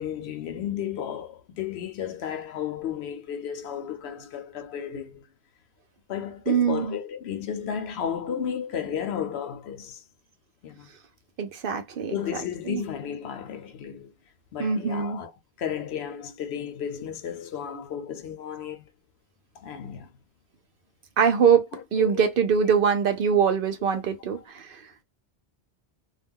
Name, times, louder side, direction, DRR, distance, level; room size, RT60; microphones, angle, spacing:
voice 1, 0.0-5.3 6.1-10.0 10.6-10.9 12.1-14.1 14.5-15.3 15.6-18.9 19.5-20.1 22.0-22.3 22.6-22.7 23.2-23.4 24.1-24.4, left 8 dB, 75° left, 0.9 m, -33 dB
voice 2, 6.5-6.9 11.4-12.1 12.7-12.8 14.6-15.2 21.2-24.8, right 7 dB, 60° right, 0.7 m, -23 dB
2.3 x 2.2 x 3.5 m
omnidirectional pair, 1.1 m